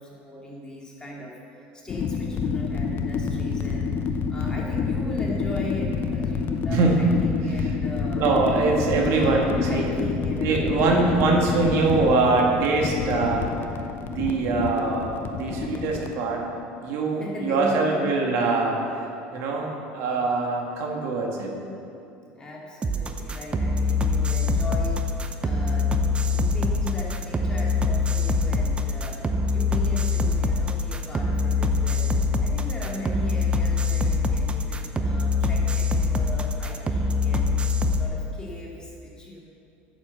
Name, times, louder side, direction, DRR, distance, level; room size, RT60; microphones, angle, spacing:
voice 1, 0.0-8.3 8.9-11.0 17.2-18.1 22.3-37.6 38.0-39.4, left 1 dB, 15° left, -4 dB, 2.5 m, -38 dB
sound 1, 1.9-16.1, left 5 dB, 40° left, 0.7 m, -28 dB
voice 2, 6.7-7.0 7.6-7.7 8.1-9.9 10.4-13.5 14.1-16.4 16.8-19.1 19.3-21.5, right 3 dB, 65° right, 0 dB, 1.7 m, -23 dB
sound 2, 22.8-38.0, left 3 dB, 20° right, 0.7 m, -24 dB
9.3 x 7.3 x 6.9 m, 2.7 s
supercardioid pair, 115°, 5 cm